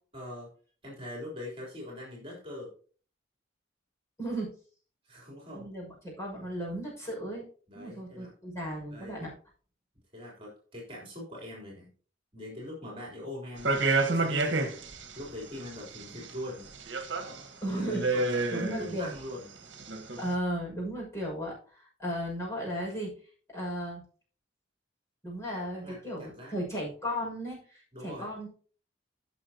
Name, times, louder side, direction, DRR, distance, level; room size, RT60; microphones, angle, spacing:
voice 1, 0.1-0.5 0.8-2.7 5.0-5.7 7.7-8.3 8.9-9.2 10.1-11.9 12.3-14.7 15.1-16.7 17.7-19.5 25.8-26.5 27.9-28.3, left 1 dB, 30° right, -3 dB, 3.7 m, -42 dB
voice 2, 4.2-4.5 5.5-7.4 7.7-9.3 17.6-18.2 18.5-19.1 20.2-23.2 23.5-24.0 25.2-28.5, equal, 15° left, -4 dB, 6.2 m, -35 dB
sound 1, 13.6-15.1 15.6-16.3 16.7-17.4 17.7-19.2 19.8-20.3, right 3 dB, 65° right, 1.6 m, -29 dB
16.5 x 6.3 x 2.9 m, 0.40 s
head